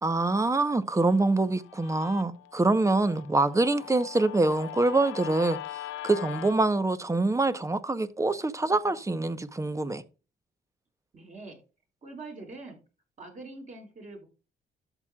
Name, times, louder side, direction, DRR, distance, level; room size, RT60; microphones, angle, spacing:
voice 1, 0.0-10.0, right 2 dB, 15° right, 0.9 m, -25 dB
Guitar, 1.0-6.5, left 14 dB, 80° left, 0.5 m, -42 dB
voice 2, 11.1-11.6 12.0-12.8 13.2-14.3, right 3 dB, 40° right, 5.6 m, -43 dB
13.0 x 7.3 x 2.4 m
cardioid pair, 90°, 20 cm